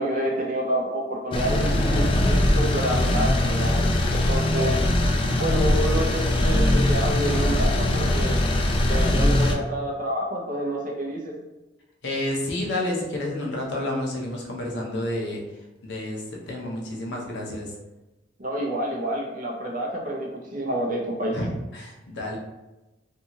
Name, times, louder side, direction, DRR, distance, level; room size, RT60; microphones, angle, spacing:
voice 1, 0.0-3.8 4.1-4.8 5.4-8.4 8.9-11.3 18.4-21.4, right 1 dB, 45° right, -1 dB, 0.6 m, -28 dB
sound 1, 1.3-9.5, left 1 dB, 30° left, 0.3 m, -21 dB
voice 2, 12.0-15.4 15.8-17.7 21.3-22.4, left 1 dB, 65° left, -1 dB, 0.7 m, -30 dB
2.6 x 2.4 x 2.8 m, 1.0 s
head